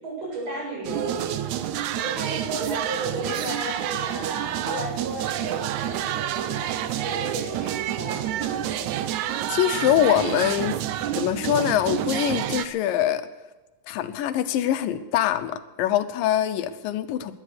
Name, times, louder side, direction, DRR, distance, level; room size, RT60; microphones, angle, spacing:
voice 1, 0.0-1.3 1.9-9.0, right 2 dB, 45° right, -4 dB, 8.7 m, -34 dB
sound 1, 0.8-12.7, right 11 dB, 75° right, 1.9 m, -28 dB
voice 2, 9.5-10.8 11.1-13.3 13.9-17.3, left 11 dB, 80° left, 11 dB, 2.5 m, -24 dB
19.0 x 11.0 x 6.6 m, 1.2 s
omnidirectional pair, 4.0 m